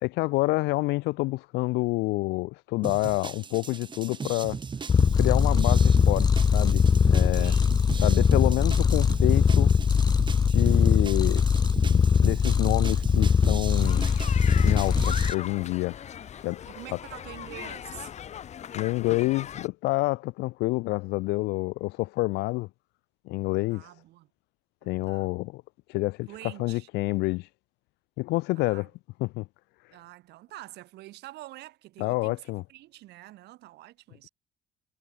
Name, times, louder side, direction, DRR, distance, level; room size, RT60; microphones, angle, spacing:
voice 1, 0.0-4.6 5.1-7.5 8.0-9.7 10.5-11.4 11.9-14.0 14.6-16.0 16.4-16.6 16.9-17.0 18.7-22.7 23.3-23.9 24.9-25.6 25.9-27.5 28.2-28.9 29.2-29.5 29.8-30.0 32.0-32.6, left 21 dB, 90° left, 0.7 m, -28 dB
sound 1, 2.8-15.3, right 5 dB, 25° right, 1.5 m, -38 dB
Purr, 4.9-15.3, left 6 dB, 25° left, 0.4 m, -21 dB
voice 2, 7.3-7.8 10.6-11.0 15.0-15.7 16.2-18.1 23.7-24.3 24.8-25.3 26.3-26.9 28.5-28.9 29.9-32.4 32.7-34.3, right 17 dB, 80° right, 6.4 m, -47 dB
sound 2, 13.8-19.7, left 9 dB, 40° left, 0.8 m, -39 dB
cardioid pair, 110°, 17 cm